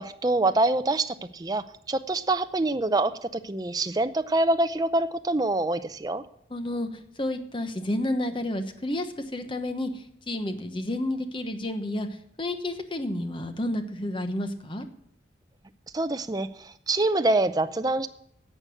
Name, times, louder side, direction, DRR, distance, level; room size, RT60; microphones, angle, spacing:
voice 1, 0.0-6.2 15.9-18.1, right 2 dB, 20° right, 10 dB, 0.5 m, -25 dB
voice 2, 6.5-14.9, left 1 dB, 30° left, 8 dB, 1.1 m, -31 dB
11.5 x 7.6 x 7.6 m, 0.74 s
head